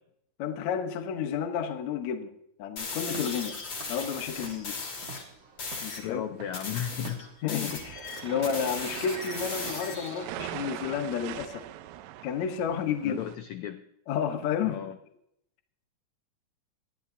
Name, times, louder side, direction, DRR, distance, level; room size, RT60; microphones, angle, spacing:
voice 1, 0.4-2.3 2.6-3.6 3.9-4.8 5.8-6.2 7.4-11.7 12.2-13.2 14.1-14.8, left 7 dB, 65° left, 1.9 m, -31 dB
sound 1, 2.8-5.2 5.6-6.1 6.5-10.2, left 4 dB, 50° left, 3.2 m, -37 dB
Walk footsteps / Siren, 3.0-8.6, right 5 dB, 55° right, 2.0 m, -49 dB
voice 2, 6.0-7.7 13.0-13.8 14.6-15.0, left 10 dB, 85° left, 1.6 m, -35 dB
sound 2, 7.7-13.4, right 13 dB, 80° right, 2.2 m, -41 dB
20.0 x 12.5 x 2.7 m
omnidirectional pair, 4.1 m